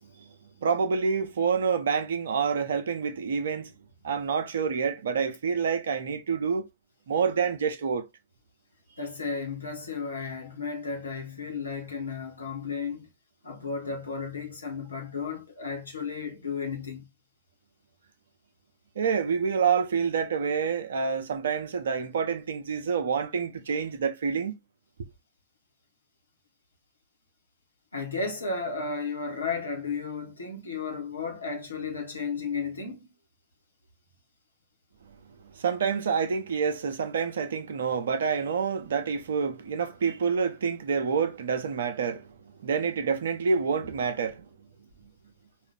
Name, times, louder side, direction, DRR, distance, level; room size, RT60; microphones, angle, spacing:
voice 1, 0.6-3.7 4.0-6.7 7.1-8.1 19.0-24.5 35.5-44.5, right 6 dB, 65° right, 0.7 m, -27 dB
voice 2, 9.0-13.1 13.4-17.1 27.9-33.1, left 4 dB, 75° left, 1.3 m, -34 dB
4.6 x 2.6 x 3.5 m
figure-of-eight pair, 90°, 0 cm